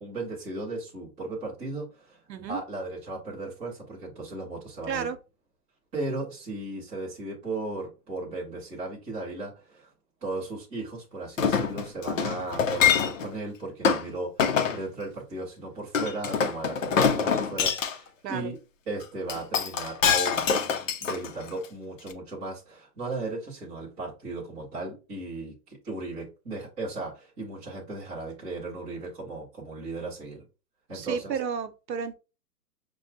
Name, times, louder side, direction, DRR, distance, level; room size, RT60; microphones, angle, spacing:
voice 1, 0.0-2.2 2.5-5.1 5.9-9.9 10.2-18.6 18.9-30.4 30.9-31.3, right 2 dB, 5° right, 0.6 m, -36 dB
voice 2, 2.3-2.6 4.9-5.2 18.2-18.5 30.9-32.1, right 6 dB, 80° right, 0.9 m, -32 dB
Chink clink, 11.4-13.3 13.8-14.0 14.4-14.8 15.9-17.9 19.3-21.6 22.1-22.2, left 7 dB, 50° left, 0.6 m, -25 dB
6.2 x 2.2 x 2.6 m
hypercardioid pair, 155°, 50 cm